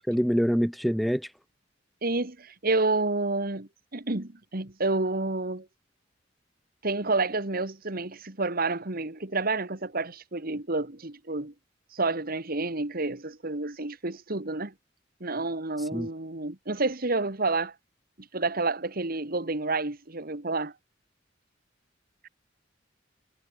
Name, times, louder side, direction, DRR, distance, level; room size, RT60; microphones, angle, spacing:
voice 1, 0.1-1.3 15.9-16.1, equal, ahead, 0.3 m, -25 dB
voice 2, 2.0-5.7 6.8-11.5 11.9-14.7 15.2-17.8 18.2-20.7 22.2-22.3, right 3 dB, 50° right, 2.0 m, -29 dB
head